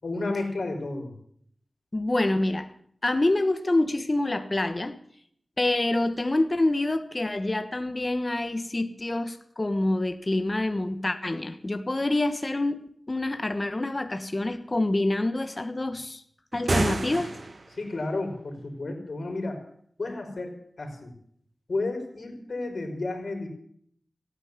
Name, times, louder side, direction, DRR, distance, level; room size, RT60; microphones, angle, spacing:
voice 1, 0.0-1.1 16.8-17.0 17.7-19.6 20.0-21.1 21.7-23.5, left 2 dB, 65° left, 3 dB, 4.7 m, -32 dB
voice 2, 1.9-2.7 3.0-5.0 5.6-16.2 16.5-17.3, left 2 dB, 30° left, 10 dB, 1.2 m, -26 dB
sound 1, 16.5-17.8, right 2 dB, 55° right, 1.4 m, -28 dB
15.5 x 9.6 x 9.6 m, 0.64 s
wide cardioid pair, 85°, 0 cm